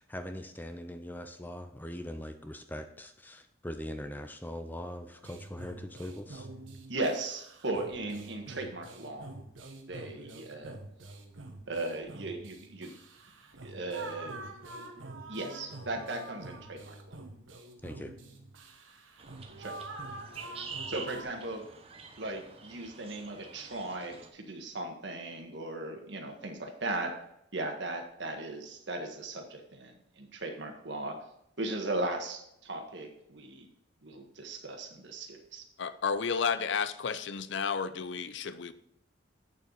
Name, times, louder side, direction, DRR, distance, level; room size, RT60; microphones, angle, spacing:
voice 1, 0.0-6.5 17.8-18.1, left 1 dB, 10° left, 8 dB, 0.5 m, -41 dB
sound 1, 5.2-21.2, right 2 dB, 85° right, 1.3 m, -46 dB
voice 2, 6.9-9.3 9.9-10.8 11.7-12.9 13.6-14.4 15.3-17.2 19.6-19.8 20.9-21.6 22.2-27.2 27.5-31.2 31.6-33.7 34.0-35.6, right 2 dB, 65° right, 4 dB, 1.6 m, -37 dB
sound 2, 19.2-24.3, right 5 dB, 30° right, 0.9 m, -47 dB
voice 3, 35.8-38.7, left 6 dB, 70° left, 14 dB, 0.5 m, -32 dB
8.4 x 7.1 x 4.0 m, 0.78 s
head